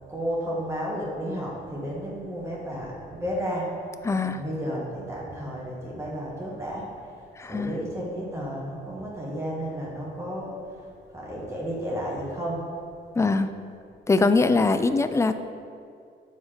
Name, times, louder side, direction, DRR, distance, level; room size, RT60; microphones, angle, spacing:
voice 1, 0.1-3.7 4.2-6.9 7.5-10.6 11.1-12.7, equal, 15° right, -5 dB, 1.4 m, -32 dB
voice 2, 4.0-4.4 7.4-7.7 13.2-13.5 14.1-15.3, left 3 dB, 15° left, 10 dB, 0.3 m, -22 dB
7.0 x 4.1 x 4.9 m, 2.3 s
cardioid pair, 90°, 20 cm